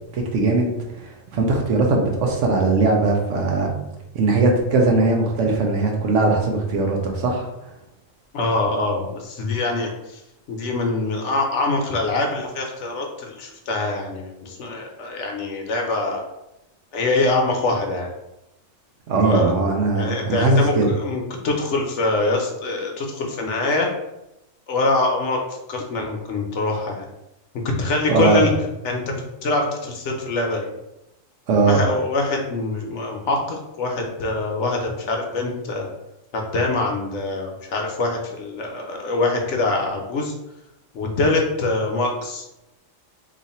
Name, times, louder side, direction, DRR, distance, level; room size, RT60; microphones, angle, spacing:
voice 1, 0.1-0.7 1.3-3.7 4.1-7.5 19.1-20.9 28.1-28.5 31.5-31.8, right 3 dB, 70° right, 1 dB, 1.0 m, -19 dB
voice 2, 8.3-10.2 10.5-16.2 16.9-18.1 19.1-19.5 19.9-23.9 24.7-25.4 25.7-27.1 27.8-28.5 28.8-30.7 31.6-35.9 36.3-40.3 40.9-42.4, left 2 dB, 65° left, 1 dB, 0.9 m, -24 dB
3.1 x 2.5 x 4.1 m, 0.89 s
omnidirectional pair, 1.4 m